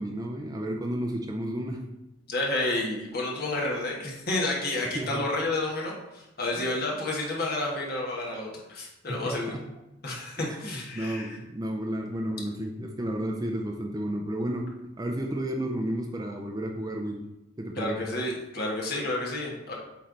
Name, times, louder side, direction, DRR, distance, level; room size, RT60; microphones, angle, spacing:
voice 1, 0.0-1.8 4.9-5.2 6.6-6.7 9.1-9.6 10.4-14.7 15.0-17.2 17.6-18.0, right 1 dB, 20° right, 1 dB, 0.5 m, -32 dB
voice 2, 2.3-9.5 10.0-11.4 17.8-19.8, left 2 dB, 50° left, -2 dB, 1.4 m, -30 dB
8.4 x 3.3 x 3.9 m, 0.94 s
head